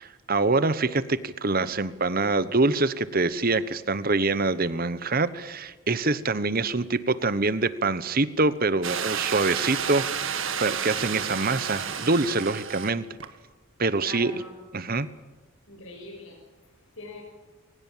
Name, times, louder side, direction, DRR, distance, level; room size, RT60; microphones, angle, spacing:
voice 1, 0.0-13.1 13.8-14.3 14.7-15.1, right 3 dB, 40° right, 15 dB, 1.1 m, -25 dB
sound 1, 8.8-12.9 13.2-13.3, right 7 dB, 60° right, 2.0 m, -31 dB
voice 2, 14.0-14.6 15.7-17.2, left 2 dB, 65° left, 1 dB, 6.8 m, -43 dB
23.0 x 19.5 x 7.5 m, 1.3 s
head